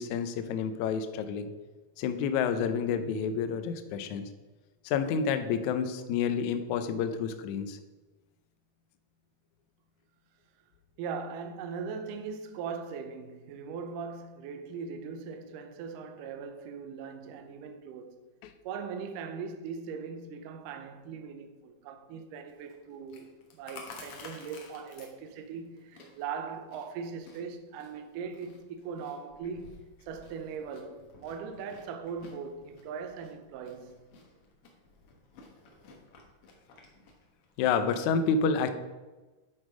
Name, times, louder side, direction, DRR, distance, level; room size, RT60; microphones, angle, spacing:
voice 1, 0.0-1.5 2.0-4.3 4.8-7.8 18.4-18.5 37.6-38.7, left 6 dB, 85° left, 1.6 m, -29 dB
voice 2, 11.0-18.2 18.6-34.0, right 6 dB, 75° right, 2.1 m, -40 dB
Chewing mastication, 22.5-38.0, left 3 dB, 55° left, 1.6 m, -54 dB
9.3 x 6.3 x 5.0 m
omnidirectional pair, 4.3 m